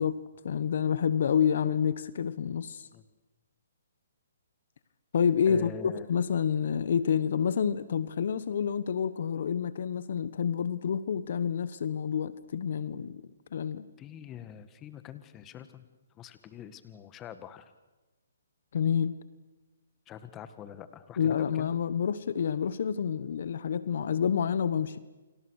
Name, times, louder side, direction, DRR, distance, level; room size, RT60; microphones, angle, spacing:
voice 1, 0.0-2.9 5.1-13.9 18.7-19.2 21.2-25.0, left 7 dB, 60° left, 1.3 m, -28 dB
voice 2, 5.5-6.1 14.0-15.8 16.2-17.7 20.1-21.7, left 9 dB, 20° left, 1.7 m, -45 dB
29.5 x 26.0 x 6.5 m
hypercardioid pair, 145°, 0 cm